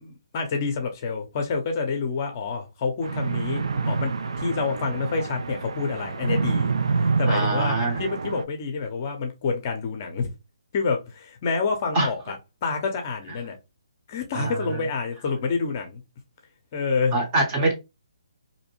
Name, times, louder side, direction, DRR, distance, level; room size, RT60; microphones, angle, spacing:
voice 1, 0.0-6.7 7.2-10.3 10.7-13.6 14.1-16.0 16.7-17.2, left 4 dB, 30° left, 0.6 m, -28 dB
sound 1, 3.0-8.4, right 4 dB, 75° right, 0.3 m, -27 dB
voice 2, 7.3-8.0 11.9-12.1 14.3-14.8 17.1-17.7, right 2 dB, 25° right, 0.7 m, -24 dB
2.6 x 2.1 x 2.8 m
hypercardioid pair, 160°, 3 cm